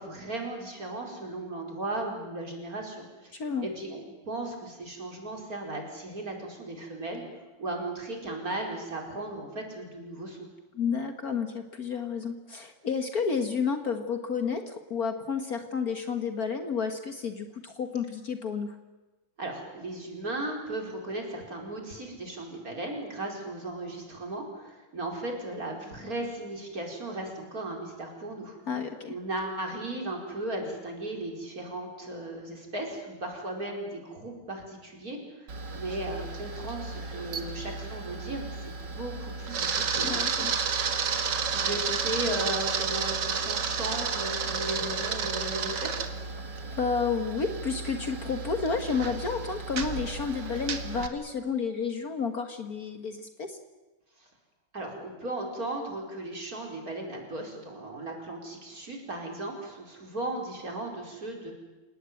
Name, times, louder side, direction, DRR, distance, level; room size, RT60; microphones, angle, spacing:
voice 1, 0.0-7.2 7.6-10.5 19.4-28.6 29.1-40.1 41.4-46.1 54.2-54.3 54.7-61.5, right 2 dB, 45° right, 1 dB, 5.2 m, -36 dB
voice 2, 3.3-3.7 10.8-18.7 28.7-29.2 40.0-40.7 46.7-53.6, left 5 dB, 50° left, 7 dB, 1.9 m, -31 dB
Camera, 35.5-51.1, right 5 dB, 60° right, 2.3 m, -32 dB
28.5 x 18.0 x 9.2 m, 1.2 s
omnidirectional pair, 2.2 m